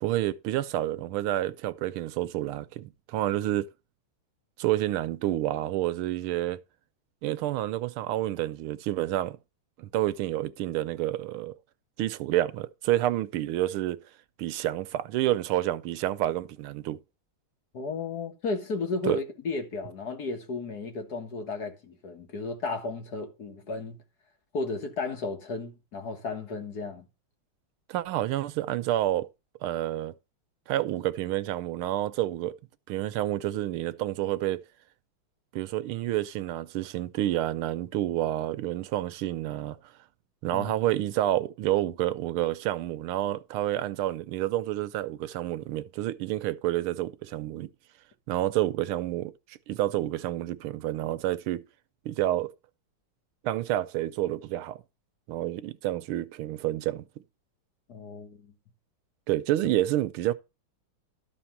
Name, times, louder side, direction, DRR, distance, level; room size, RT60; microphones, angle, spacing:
voice 1, 0.0-3.7 4.6-6.6 7.2-9.4 9.8-11.5 12.0-14.0 14.4-17.0 19.0-19.2 27.9-29.3 29.6-30.1 30.7-32.6 32.9-34.6 35.5-39.8 40.4-47.7 48.3-51.6 52.0-52.5 53.4-54.8 55.3-57.0 59.3-60.3, right 14 dB, 85° right, 1.5 m, -29 dB
voice 2, 17.7-24.0 24.5-27.1 40.5-40.7 57.9-58.4, left 3 dB, 50° left, 2.0 m, -34 dB
12.5 x 4.4 x 5.8 m
omnidirectional pair, 2.3 m